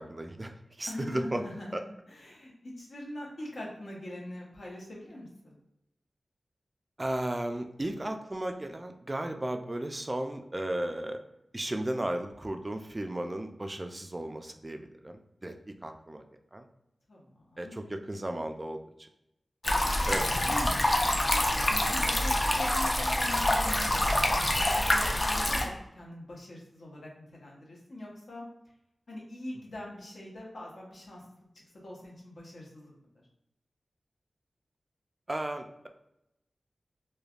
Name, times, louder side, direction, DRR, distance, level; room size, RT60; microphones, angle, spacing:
voice 1, 0.0-1.4 1.7-1.8 7.0-11.2 11.5-16.2 16.5-16.7 17.6-18.8 20.1-20.3 35.3-35.9, right 1 dB, 25° right, 5 dB, 0.3 m, -35 dB
voice 2, 0.9-5.6 17.1-17.7 20.0-20.5 21.3-28.5 29.1-31.4 31.8-32.9, left 1 dB, 75° left, -3 dB, 0.9 m, -43 dB
sound 1, 19.6-25.7, left 1 dB, 35° left, 0.5 m, -26 dB
3.2 x 2.2 x 2.4 m, 0.86 s
wide cardioid pair, 65°, 0 cm